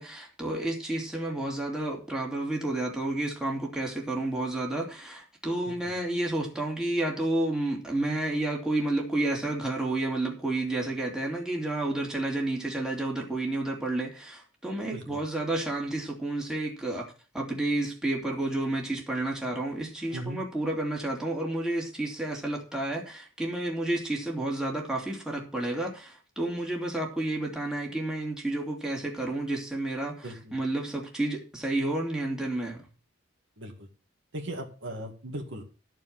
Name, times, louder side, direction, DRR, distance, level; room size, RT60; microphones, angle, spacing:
voice 1, 0.0-17.1 17.3-32.9, right 2 dB, 5° right, -1 dB, 2.8 m, -30 dB
voice 2, 30.2-30.5 33.6-33.9 34.3-35.6, right 1 dB, 65° right, 3 dB, 2.2 m, -38 dB
14.0 x 4.7 x 7.6 m, 0.36 s
head